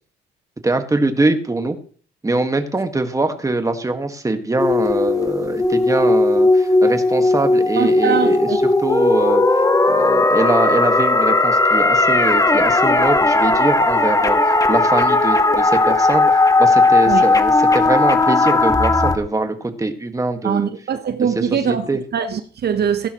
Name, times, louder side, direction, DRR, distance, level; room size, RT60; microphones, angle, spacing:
voice 1, 0.6-1.8 2.2-9.4 9.9-16.2 16.6-20.7 21.3-22.0, right 2 dB, 15° right, 1.7 m, -22 dB
sound 1, 4.6-19.2, left 2 dB, 15° left, 1.4 m, -16 dB
voice 2, 7.8-8.6 17.1-17.2 20.4-23.1, right 7 dB, 55° right, 1.0 m, -22 dB
16.0 x 11.5 x 3.1 m
cardioid pair, 90°, 20 cm